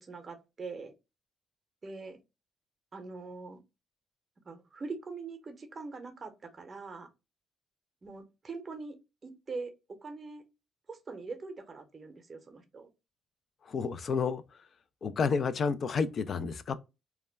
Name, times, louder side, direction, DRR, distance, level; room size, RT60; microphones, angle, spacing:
voice 1, 0.0-0.9 1.8-2.2 2.9-3.6 4.4-7.1 8.0-9.0 9.2-9.7 10.0-10.4 10.9-12.9, right 4 dB, 35° right, 0.6 m, -42 dB
voice 2, 13.6-14.4 15.0-16.8, left 5 dB, 50° left, 0.3 m, -30 dB
2.2 x 2.1 x 3.2 m
cardioid pair, 90°, 0 cm